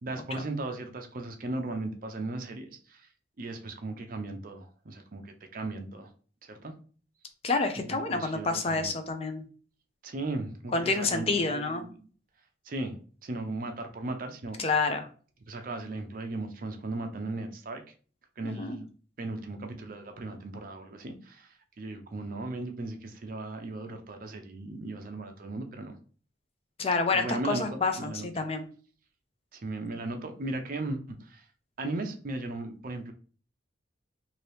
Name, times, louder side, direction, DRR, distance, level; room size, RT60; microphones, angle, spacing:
voice 1, 0.0-3.1 3.4-6.1 6.4-6.7 7.9-8.9 10.0-12.1 12.6-14.6 15.5-17.8 18.4-18.9 19.2-26.0 27.1-28.3 29.5-31.5 31.8-33.1, right 2 dB, 45° right, 6 dB, 0.5 m, -37 dB
voice 2, 7.4-9.4 10.7-11.9 14.6-15.1 18.4-18.8 26.8-28.7, left 3 dB, 30° left, 7 dB, 0.4 m, -28 dB
2.8 x 2.6 x 3.2 m, 0.41 s
head